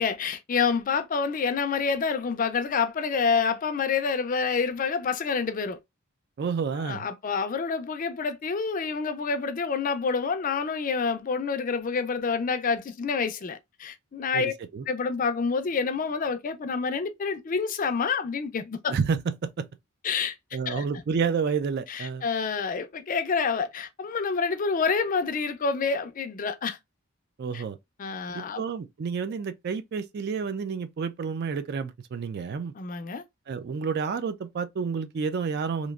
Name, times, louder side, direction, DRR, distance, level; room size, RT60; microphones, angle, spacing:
voice 1, 0.0-5.8 6.8-14.5 14.9-18.9 20.0-20.3 20.7-20.8 21.9-26.8 27.5-27.6 28.0-28.6 32.7-33.2, left 5 dB, 35° left, 0.4 m, -28 dB
voice 2, 6.4-7.1 14.3-14.8 18.9-19.7 20.5-22.2 27.4-27.8 28.3-32.7 33.5-35.9, right 5 dB, 50° right, 0.3 m, -30 dB
2.9 x 2.5 x 2.3 m
head